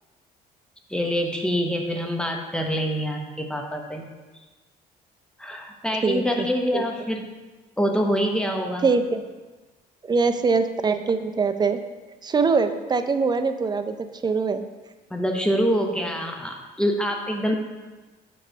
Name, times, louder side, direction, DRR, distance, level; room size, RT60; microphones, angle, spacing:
voice 1, 0.9-4.1 5.4-7.3 7.8-8.9 15.1-17.6, equal, 5° left, 2 dB, 0.9 m, -25 dB
voice 2, 6.0-6.5 6.7-6.8 8.8-9.2 10.1-11.8 12.2-14.6, right 4 dB, 25° right, 9 dB, 0.5 m, -23 dB
7.7 x 3.2 x 6.3 m, 1.2 s
cardioid pair, 110°, 17 cm